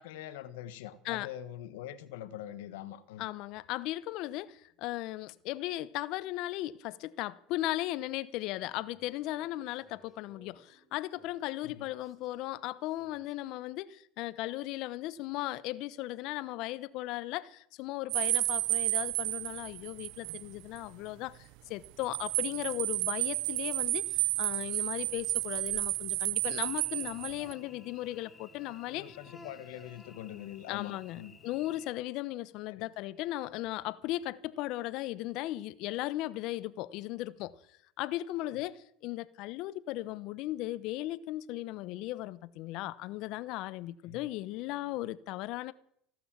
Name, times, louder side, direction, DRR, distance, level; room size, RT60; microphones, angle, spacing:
voice 1, 0.0-3.3 11.6-11.8 28.9-31.3 32.7-32.9 38.4-38.6 44.0-44.3, left 12 dB, 85° left, 1.2 m, -44 dB
voice 2, 3.2-29.2 30.7-37.5 38.0-45.7, left 16 dB, 60° left, 0.9 m, -37 dB
sound 1, 8.4-13.3, right 1 dB, 5° right, 6.0 m, -64 dB
sound 2, 18.1-20.5 20.8-20.9 21.8-27.5, right 22 dB, 70° right, 0.6 m, -32 dB
Cricket / Buzz, 26.4-31.9, left 3 dB, 15° left, 2.1 m, -55 dB
16.0 x 12.0 x 7.4 m
supercardioid pair, 115°, 0 cm